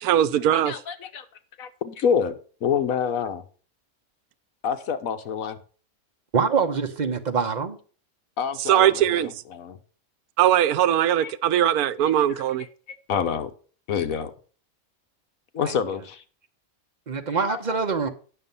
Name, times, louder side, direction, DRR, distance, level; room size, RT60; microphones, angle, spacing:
voice 1, 0.0-0.7 8.7-9.3 10.4-12.7, right 11 dB, 90° right, 1.1 m, -20 dB
voice 2, 0.7-1.2 1.6-2.3 2.6-3.4 4.6-5.6 8.4-9.8 11.2-11.6 12.0-12.1 12.9-13.5 13.9-14.3 15.5-16.2 17.5-17.6, left 7 dB, 75° left, 1.3 m, -27 dB
voice 3, 6.3-7.8 15.6-15.8 17.1-18.1, right 5 dB, 35° right, 1.1 m, -24 dB
9.3 x 6.5 x 5.4 m
omnidirectional pair, 1.5 m